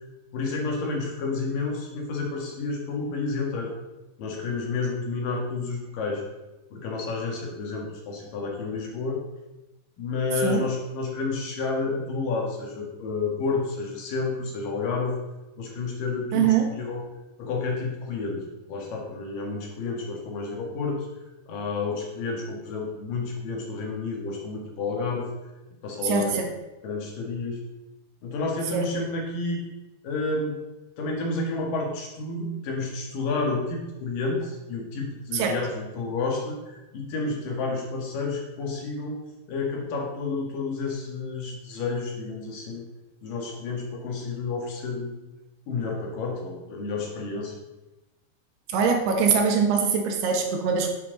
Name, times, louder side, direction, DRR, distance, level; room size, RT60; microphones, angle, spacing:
voice 1, 0.3-3.7 4.2-6.2 6.7-9.2 10.0-15.1 15.6-17.1 17.4-21.1 21.5-25.3 25.8-26.5 26.8-27.6 28.2-29.6 30.0-30.6 31.0-39.2 39.5-42.8 43.2-45.2 45.7-47.6, left 3 dB, 65° left, 0 dB, 3.2 m, -30 dB
voice 2, 16.3-16.7 26.0-26.5 28.7-28.9 35.3-35.6 48.7-50.9, right 6 dB, 85° right, 3 dB, 3.4 m, -23 dB
11.5 x 7.4 x 4.0 m, 1.0 s
omnidirectional pair, 4.5 m